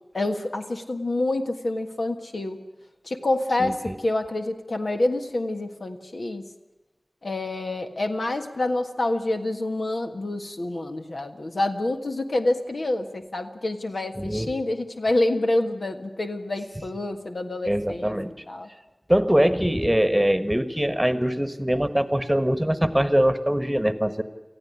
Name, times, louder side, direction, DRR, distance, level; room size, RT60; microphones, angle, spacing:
voice 1, 0.1-2.6 3.0-6.4 7.2-18.1 18.5-18.7, left 2 dB, 85° left, 5 dB, 1.6 m, -27 dB
voice 2, 3.6-3.9 14.2-14.5 17.6-18.3 19.1-24.2, equal, 10° right, 11 dB, 1.4 m, -22 dB
19.0 x 14.5 x 9.6 m, 1.1 s
wide cardioid pair, 45°, 0 cm